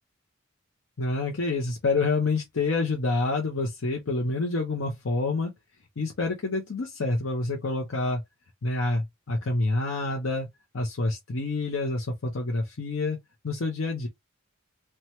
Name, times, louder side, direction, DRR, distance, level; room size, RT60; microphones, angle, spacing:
voice 1, 1.0-5.5 6.0-8.2 8.6-10.5 10.7-13.2 13.4-14.1, left 3 dB, 70° left, 0.6 m, -27 dB
3.1 x 2.2 x 2.8 m
head